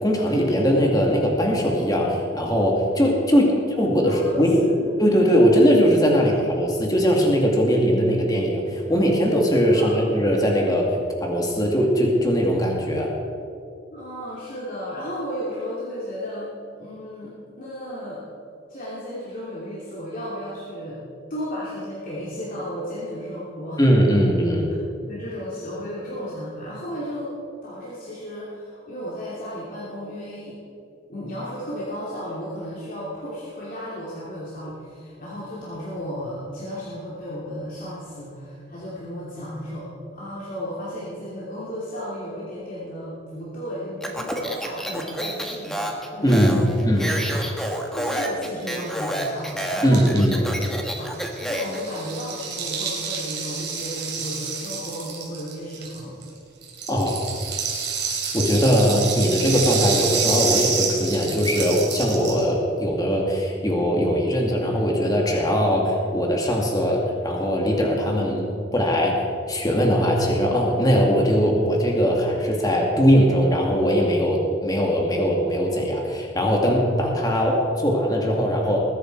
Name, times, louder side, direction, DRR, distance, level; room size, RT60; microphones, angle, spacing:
voice 1, 0.0-4.6 5.0-10.9 11.2-13.1 23.8-24.7 46.2-47.1 49.8-50.4 56.9-57.3 58.3-68.5 68.7-69.2 69.5-78.8, equal, 20° left, 0 dB, 2.1 m, -20 dB
voice 2, 4.0-4.9 6.2-6.3 9.7-10.0 13.9-16.5 16.8-18.2 18.7-21.0 21.3-23.8 25.0-27.3 27.6-30.6 31.1-46.9 47.3-47.5 47.9-50.0 50.3-50.5 50.7-56.2, equal, 50° left, -7 dB, 2.7 m, -34 dB
Speech, 44.0-51.8, right 1 dB, ahead, 1.3 m, -29 dB
Rattle (instrument), 48.6-48.7 48.9-49.0 49.2-56.3 56.6-62.5, right 6 dB, 65° right, 3.3 m, -28 dB
20.5 x 10.0 x 4.6 m, 2.5 s
head